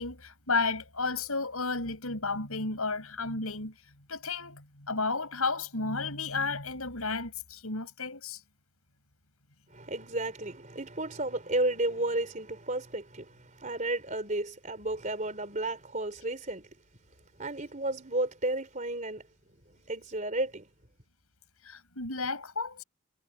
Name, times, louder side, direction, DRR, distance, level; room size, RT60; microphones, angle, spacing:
voice 1, 0.0-3.7 4.1-8.4 21.6-22.8, left 3 dB, 75° left, 6.0 m, -32 dB
voice 2, 9.7-16.7 17.4-19.3 19.9-20.7, right 2 dB, 35° right, 3.8 m, -32 dB
head